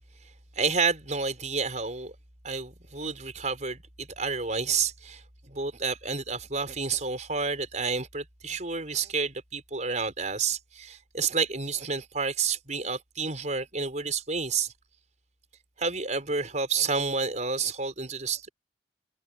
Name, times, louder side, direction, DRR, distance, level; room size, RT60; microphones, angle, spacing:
voice 1, 0.6-2.1 2.4-14.7 15.8-18.5, right 5 dB, 40° right, 5.3 m, -30 dB
head